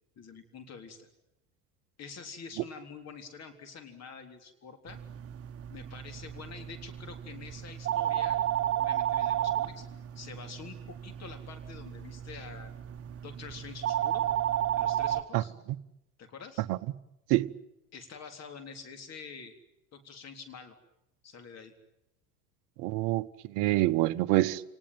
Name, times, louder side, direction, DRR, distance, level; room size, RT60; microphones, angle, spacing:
voice 1, 0.2-1.1 2.0-5.0 5.7-9.9 10.1-12.7 13.2-14.3 14.7-15.5 16.2-16.6 17.9-19.5 19.9-20.8 21.2-21.7, left 5 dB, 35° left, 3.8 m, -47 dB
sound 1, 4.9-15.2, right 11 dB, 30° right, 1.3 m, -33 dB
voice 2, 22.8-24.6, right 17 dB, 50° right, 1.0 m, -26 dB
28.5 x 19.0 x 9.3 m
figure-of-eight pair, 75°, 44 cm